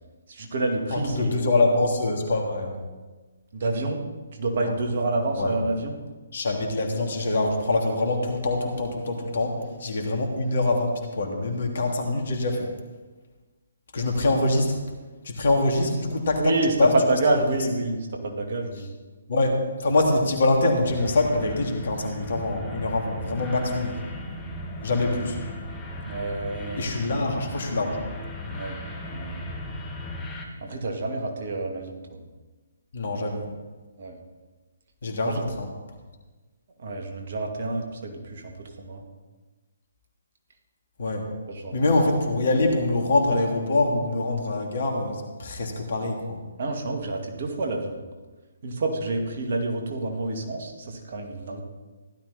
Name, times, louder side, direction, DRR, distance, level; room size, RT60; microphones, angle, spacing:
voice 1, 0.3-1.4 3.5-4.0 4.4-6.0 16.4-18.9 26.0-26.9 28.5-28.8 29.1-29.4 30.6-32.2 34.0-34.2 35.2-35.4 36.8-39.0 41.5-41.7 46.6-48.0 48.6-51.6, right 2 dB, 50° right, 2 dB, 2.3 m, -28 dB
voice 2, 0.9-2.8 4.6-4.7 5.3-5.6 6.3-12.7 13.9-14.8 15.2-17.5 19.3-24.0 24.8-25.4 26.7-28.0 32.9-33.5 35.0-35.7 41.0-41.3 41.7-46.4, left 2 dB, 55° left, 2 dB, 2.8 m, -24 dB
sound 1, 20.8-30.4, left 1 dB, 10° left, 2.0 m, -36 dB
16.0 x 12.0 x 4.3 m, 1.3 s
figure-of-eight pair, 135°, 0 cm